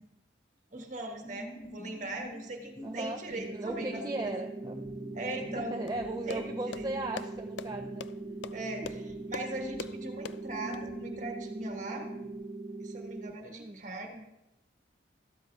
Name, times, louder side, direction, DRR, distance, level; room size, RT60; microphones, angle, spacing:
voice 1, 0.7-4.3 5.1-5.9 6.2-6.4 6.7-6.9 8.5-12.1 12.8-14.3, right 2 dB, 40° right, 2 dB, 1.5 m, -40 dB
sound 1, 1.2-12.3, equal, 20° left, 0.9 m, -46 dB
voice 2, 2.8-3.2 3.5-4.8 5.6-8.1 13.5-13.8, right 2 dB, 20° right, 3 dB, 0.4 m, -37 dB
sound 2, 3.3-13.3, right 2 dB, 75° right, 1.1 m, -41 dB
sound 3, 5.9-10.8, left 6 dB, 65° left, 0.4 m, -44 dB
13.5 x 12.5 x 2.4 m, 0.91 s
head